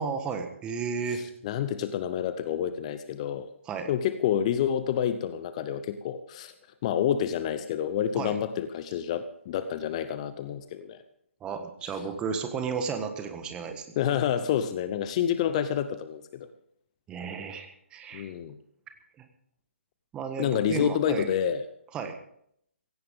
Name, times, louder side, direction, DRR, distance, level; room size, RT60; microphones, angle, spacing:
voice 1, 0.0-1.3 3.7-3.9 8.1-8.3 11.4-13.8 17.1-18.3 19.2-19.3 20.1-21.3 21.9-22.1, right 5 dB, 15° right, 6 dB, 1.5 m, -33 dB
voice 2, 1.1-3.5 3.9-6.5 6.8-11.0 14.0-16.5 18.1-18.6 20.4-21.6, left 9 dB, 30° left, 12 dB, 0.8 m, -28 dB
16.5 x 16.0 x 3.7 m, 0.69 s
figure-of-eight pair, 140°, 7 cm